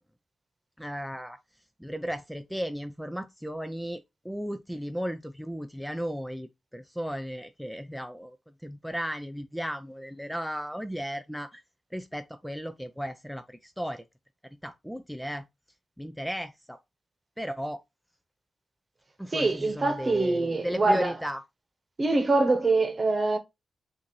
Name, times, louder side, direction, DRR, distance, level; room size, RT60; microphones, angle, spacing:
voice 1, 0.8-1.4 1.8-11.6 11.9-14.0 14.6-15.5 16.0-16.8 17.4-17.8 19.2-21.4, equal, ahead, 0.4 m, -35 dB
voice 2, 19.3-21.1 22.0-23.4, right 2 dB, 40° right, 1.1 m, -24 dB
5.6 x 2.7 x 3.1 m
cardioid pair, 60°, 0 cm